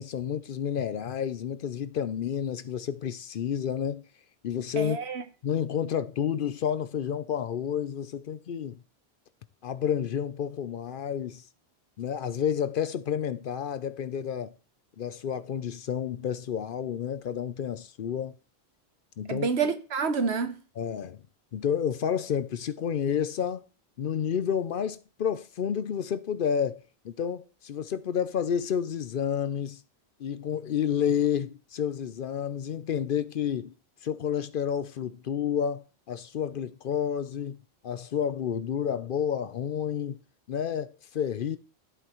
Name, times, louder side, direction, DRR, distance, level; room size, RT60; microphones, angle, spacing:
voice 1, 0.0-4.0 4.4-5.0 5.4-8.8 9.6-11.4 12.0-14.5 15.0-18.4 19.2-19.5 20.8-21.2 21.5-23.6 24.0-29.8 30.2-33.7 34.0-40.2 40.5-41.6, left 8 dB, 60° left, 0.7 m, -30 dB
voice 2, 4.8-5.2 19.3-20.6, right 5 dB, 80° right, 1.3 m, -28 dB
12.0 x 8.1 x 3.0 m
omnidirectional pair, 1.1 m